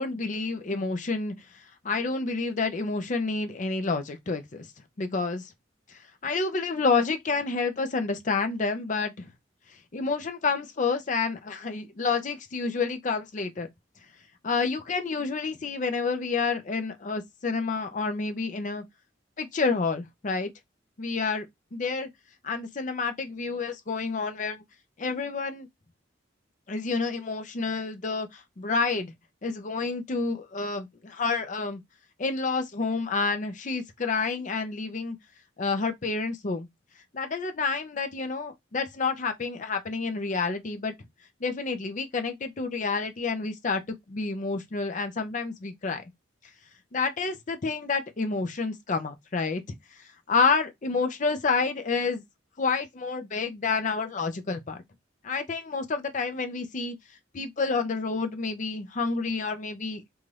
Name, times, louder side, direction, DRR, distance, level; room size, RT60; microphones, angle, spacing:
voice 1, 0.0-1.4 1.8-4.7 5.0-5.5 6.2-9.3 9.9-13.7 14.4-18.8 19.4-20.5 21.0-21.5 21.7-22.1 22.4-24.6 25.0-25.7 26.7-29.1 29.4-31.8 32.2-35.2 35.6-36.7 37.1-40.9 41.4-43.8 44.1-46.0 46.9-49.6 50.3-52.2 52.6-54.8 55.2-57.0 57.3-60.0, left 4 dB, 40° left, 0.5 m, -29 dB
2.7 x 2.3 x 3.1 m
head